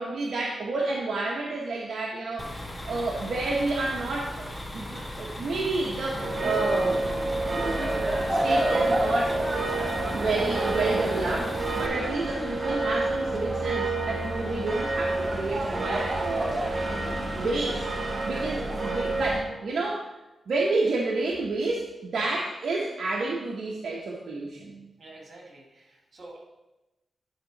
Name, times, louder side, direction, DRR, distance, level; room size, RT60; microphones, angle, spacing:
voice 1, 0.0-2.5 2.8-4.5 4.7-7.0 7.5-9.4 10.1-20.1 20.5-24.9, right 3 dB, 70° right, -3 dB, 0.9 m, -30 dB
sound 1, 2.4-11.9, left 1 dB, 15° left, 0.9 m, -38 dB
sound 2, 6.1-19.4, right 2 dB, 30° right, 1.0 m, -28 dB
voice 2, 25.0-26.4, right 2 dB, 50° right, -1 dB, 2.2 m, -48 dB
11.0 x 3.6 x 4.0 m, 1.0 s
cardioid pair, 95°, 0 cm